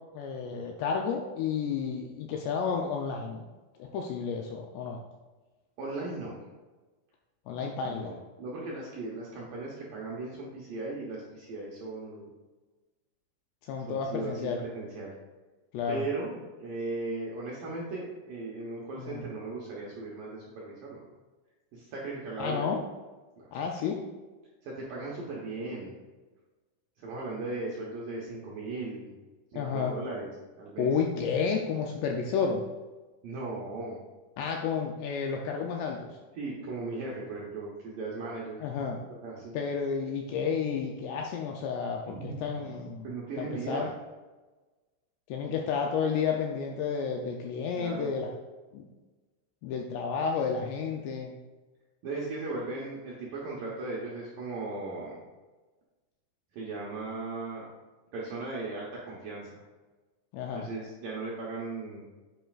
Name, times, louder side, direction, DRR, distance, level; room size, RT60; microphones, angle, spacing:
voice 1, 0.1-3.4 3.8-5.0 7.5-8.2 13.6-14.6 15.7-16.1 19.0-19.2 22.4-22.8 23.5-24.1 29.5-30.0 30.8-32.6 34.4-36.2 38.6-39.0 39.5-43.1 43.4-43.9 45.3-48.3 48.7-48.8 49.6-51.3 60.3-60.7, left 6 dB, 85° left, 1 dB, 2.4 m, -31 dB
voice 2, 5.8-6.4 7.8-12.3 13.9-15.1 15.9-21.0 21.7-22.7 23.4-23.5 24.6-25.9 27.0-29.1 29.5-30.3 30.6-30.9 33.2-34.0 36.4-38.6 39.2-39.5 42.1-42.4 43.0-43.9 47.7-48.1 52.0-55.2 56.5-57.7 58.1-59.6 60.5-62.0, right 3 dB, 80° right, -5 dB, 1.9 m, -37 dB
9.2 x 7.7 x 2.4 m, 1.2 s
omnidirectional pair, 5.6 m